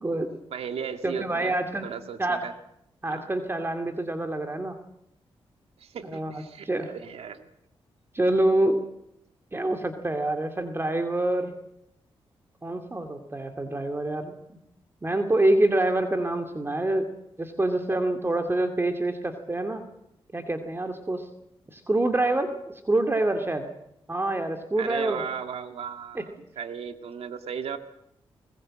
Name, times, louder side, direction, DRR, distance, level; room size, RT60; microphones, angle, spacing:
voice 1, 0.5-1.5 1.8-2.5 3.1-3.3 5.8-7.5 24.8-27.8, right 7 dB, 80° right, 8 dB, 2.0 m, -36 dB
voice 2, 1.0-1.9 2.2-2.4 3.0-4.8 6.1-6.9 8.1-8.8 9.5-11.5 12.6-14.3 15.0-17.1 17.4-19.8 20.3-21.3 21.7-22.5 22.8-23.7 24.1-25.2 26.1-26.3, right 1 dB, 25° right, 6 dB, 2.4 m, -26 dB
21.0 x 20.5 x 7.7 m, 0.79 s
cardioid pair, 70°, 10 cm